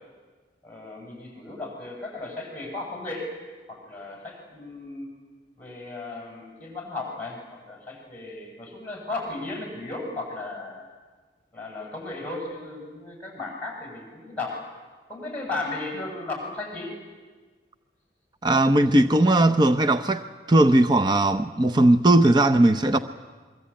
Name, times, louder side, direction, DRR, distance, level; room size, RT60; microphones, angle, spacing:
voice 1, 0.6-3.3 3.7-5.1 5.6-10.9 11.5-14.6 15.1-16.9, left 2 dB, 10° left, 7.7 m, -35 dB
voice 2, 18.4-23.0, right 1 dB, 25° right, 0.7 m, -18 dB
24.5 x 24.0 x 8.8 m
head